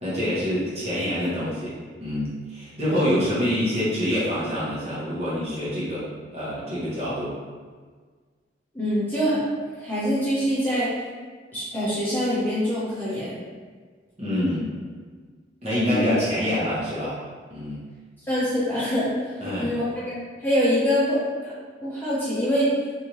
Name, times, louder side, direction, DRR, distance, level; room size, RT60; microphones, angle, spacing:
voice 1, 0.0-6.1 6.3-7.4 14.2-14.6 15.6-17.2 17.5-17.8 19.4-19.7, equal, 35° right, -9 dB, 1.2 m, -26 dB
voice 2, 8.7-9.4 9.7-10.9 11.5-13.4 15.9-16.0 18.3-21.5 21.8-22.7, equal, 10° left, -10 dB, 0.8 m, -25 dB
3.3 x 2.7 x 3.0 m, 1.5 s
head